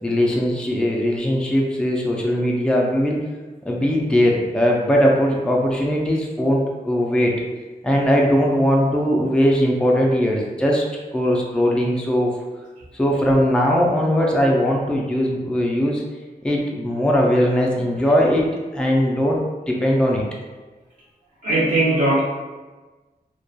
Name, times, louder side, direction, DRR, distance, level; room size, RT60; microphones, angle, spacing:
voice 1, 0.0-3.2 3.6-7.3 7.8-10.8 11.1-12.3 12.9-16.0 16.4-18.5 18.7-19.4 19.7-20.2, equal, 5° left, -2 dB, 0.3 m, -19 dB
voice 2, 21.4-22.2, right 1 dB, 55° right, -8 dB, 0.5 m, -18 dB
2.2 x 2.1 x 2.6 m, 1.2 s
wide cardioid pair, 140°, 16 cm